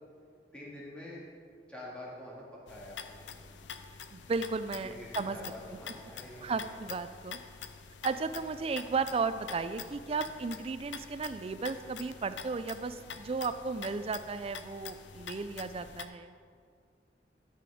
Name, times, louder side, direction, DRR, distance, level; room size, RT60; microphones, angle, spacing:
voice 1, 0.5-1.2 1.7-3.2 3.5-3.7 4.8-6.8, left 1 dB, 5° left, -6 dB, 2.1 m, -46 dB
sound 1, 2.7-16.0, left 7 dB, 85° left, 0.5 m, -46 dB
voice 2, 4.1-5.4 6.4-7.4 8.0-16.3, right 4 dB, 35° right, 11 dB, 0.4 m, -34 dB
12.0 x 6.0 x 4.9 m, 2.1 s
head